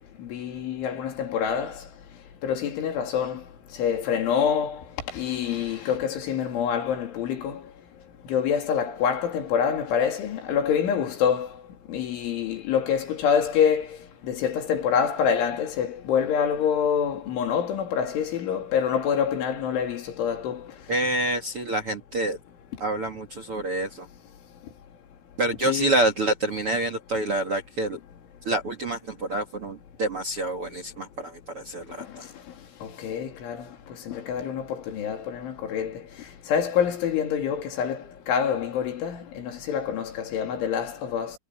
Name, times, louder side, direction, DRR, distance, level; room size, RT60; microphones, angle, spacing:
voice 1, 0.2-1.8 2.4-3.4 3.8-4.8 5.1-7.6 8.3-11.5 11.9-13.9 14.3-20.6 25.7-26.0 33.0-33.6 34.1-36.0 36.5-41.3, left 7 dB, 75° left, 5.5 m, -26 dB
voice 2, 20.9-22.4 22.8-24.1 25.4-28.0 28.4-32.2, right 1 dB, 45° right, 2.0 m, -27 dB
omnidirectional pair, 5.5 m